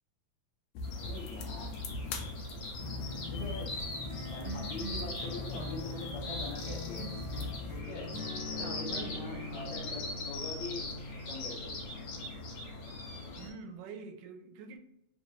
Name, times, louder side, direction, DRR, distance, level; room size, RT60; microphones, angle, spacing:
sound 1, 0.7-7.8, left 3 dB, 90° left, 1.5 m, -41 dB
sound 2, 0.8-13.5, left 2 dB, 55° left, 1.7 m, -42 dB
voice 1, 1.0-1.8 3.3-3.7 4.2-7.1 7.7-8.1 8.5-10.9 11.2-11.9, left 3 dB, 75° left, 1.8 m, -43 dB
sound 3, 2.8-13.3, left 2 dB, 40° right, 0.4 m, -43 dB
voice 2, 8.5-10.1 13.4-14.8, right 5 dB, 80° right, 2.0 m, -47 dB
5.5 x 2.5 x 3.1 m
omnidirectional pair, 3.7 m